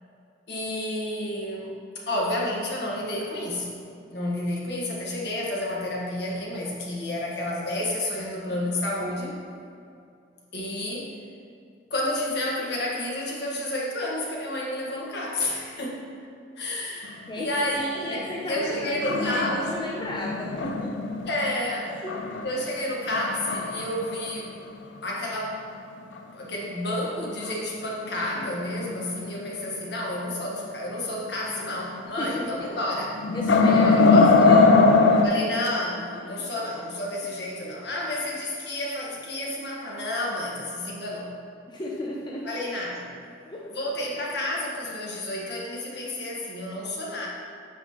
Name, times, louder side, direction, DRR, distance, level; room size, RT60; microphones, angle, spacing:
voice 1, 0.5-3.7 4.1-9.4 10.5-11.1 11.9-16.0 16.6-18.2 18.5-19.8 21.3-21.9 22.4-24.5 25.0-25.6 26.3-33.1 33.8-34.3 35.2-41.3 42.4-43.1 43.7-47.3, left 1 dB, 65° left, -3 dB, 1.5 m, -30 dB
voice 2, 17.3-17.7 18.1-21.0 21.8-22.4 32.2-32.9 33.3-35.2 36.3-36.5 41.7-42.5 43.4-43.8, left 1 dB, 25° left, -3 dB, 0.7 m, -34 dB
sound 1, 18.4-21.5 22.0-22.6 23.1-24.2 24.5-24.6 25.1-25.2 27.4-27.5 28.1-29.3 29.7-29.8 31.5-31.9 32.3-32.4 32.8-35.2, left 3 dB, 85° left, 0.5 m, -21 dB
9.1 x 6.1 x 3.0 m, 2.5 s
head